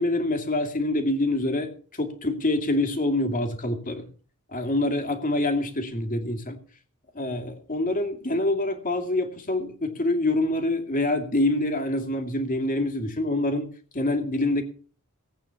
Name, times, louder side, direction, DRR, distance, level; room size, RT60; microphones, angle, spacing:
voice 1, 0.0-1.7 2.0-4.0 4.5-6.6 7.1-13.7 13.9-14.6, left 2 dB, 40° left, 5 dB, 2.5 m, -26 dB
18.5 x 8.8 x 5.9 m, 0.44 s
head